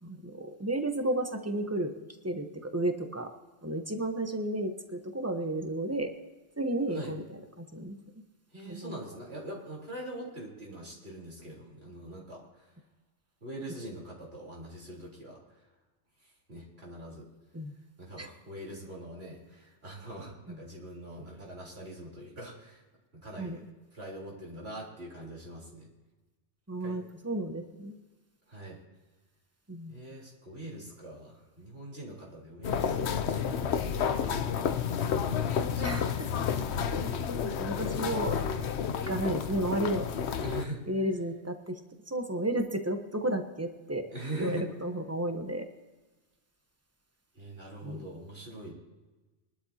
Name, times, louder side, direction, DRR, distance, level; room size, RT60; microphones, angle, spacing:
voice 1, 0.0-1.9 2.2-3.3 3.6-6.1 6.6-8.0 8.6-9.0 17.5-17.7 18.2-18.3 20.5-20.6 23.4-23.6 26.7-28.0 29.7-30.0 35.8-36.3 36.9-37.1 37.4-38.4 39.1-40.1 40.9-41.8 42.1-44.1 44.4-45.7 47.8-48.0, right 1 dB, 15° right, 6 dB, 0.9 m, -33 dB
voice 2, 8.5-12.4 13.4-15.4 16.5-17.3 18.0-22.8 23.1-23.6 23.9-25.9 26.8-27.0 28.5-28.8 29.9-36.1 36.5-36.9 40.4-40.8 44.1-44.7 47.3-48.7, right 1 dB, 55° right, -4 dB, 4.1 m, -43 dB
sound 1, 32.6-40.7, left 7 dB, 65° left, 1.0 m, -30 dB
21.5 x 12.0 x 2.8 m, 1.2 s
omnidirectional pair, 1.2 m